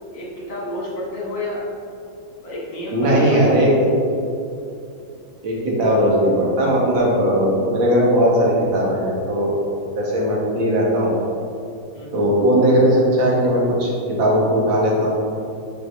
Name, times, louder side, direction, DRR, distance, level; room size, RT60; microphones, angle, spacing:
voice 1, 0.1-1.7 2.4-3.7 11.9-12.2, left 1 dB, 70° left, -5 dB, 2.3 m, -30 dB
voice 2, 2.9-3.7 4.0-4.1 5.4-9.6 10.0-11.1 12.1-15.1, equal, 80° right, -4 dB, 2.2 m, -18 dB
8.0 x 5.7 x 3.2 m, 2.7 s
omnidirectional pair, 2.1 m